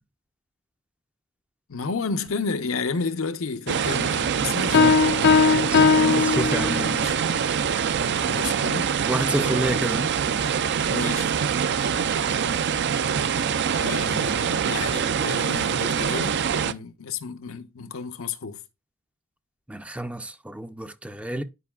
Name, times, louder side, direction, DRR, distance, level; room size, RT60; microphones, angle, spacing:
voice 1, 1.7-4.9 5.1-5.5 6.7-7.1 8.2-9.0 10.9-11.3 13.8-18.6, left 4 dB, 70° left, 0.7 m, -32 dB
sound 1, 3.7-16.7, right 7 dB, 55° right, 0.5 m, -24 dB
Piano, 4.7-7.1, left 5 dB, 55° left, 0.4 m, -19 dB
voice 2, 5.5-7.0 9.1-10.1 19.7-21.4, right 1 dB, 5° right, 0.5 m, -29 dB
11.0 x 5.2 x 2.3 m
head